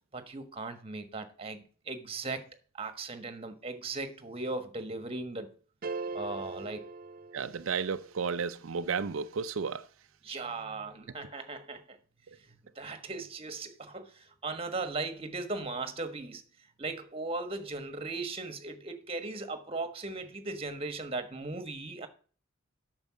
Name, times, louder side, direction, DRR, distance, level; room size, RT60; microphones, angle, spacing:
voice 1, 0.1-2.4 2.7-5.5 6.1-6.9 10.2-12.0 12.5-16.4 16.8-22.1, right 3 dB, 30° right, 1.4 m, -38 dB
sound 1, 5.8-8.1, right 4 dB, 45° right, 0.6 m, -40 dB
voice 2, 7.3-9.8, right 5 dB, 85° right, 0.5 m, -33 dB
8.9 x 6.6 x 6.2 m
head